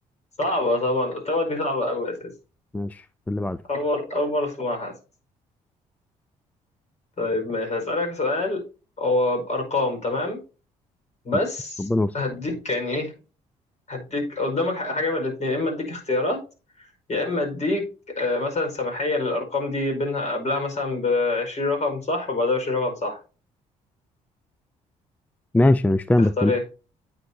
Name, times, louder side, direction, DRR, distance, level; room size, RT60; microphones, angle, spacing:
voice 1, 0.4-2.3 3.7-4.9 7.2-8.6 9.0-10.4 11.2-11.9 12.1-13.1 13.9-16.4 16.8-23.2 26.2-26.6, left 2 dB, 45° left, 4.9 m, -26 dB
voice 2, 2.7-3.6 11.9-12.1 25.5-26.5, left 2 dB, 10° left, 0.4 m, -21 dB
9.3 x 8.7 x 2.8 m
supercardioid pair, 60°, 17 cm